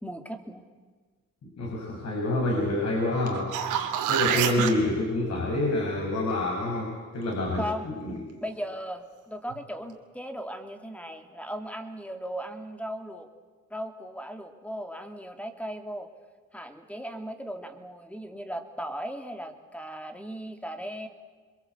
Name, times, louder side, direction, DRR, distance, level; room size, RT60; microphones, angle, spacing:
voice 1, 0.0-0.6 4.3-4.7 7.6-7.9 8.4-13.3 13.7-16.1 16.5-21.1, equal, 5° left, 6 dB, 2.9 m, -37 dB
voice 2, 1.6-3.7 4.1-8.2, left 1 dB, 55° left, -1 dB, 6.3 m, -27 dB
sound 1, 3.3-4.7 9.5-9.6, right 9 dB, 90° right, 2.7 m, -27 dB
26.5 x 22.0 x 8.2 m, 1.4 s
cardioid pair, 90°, 30 cm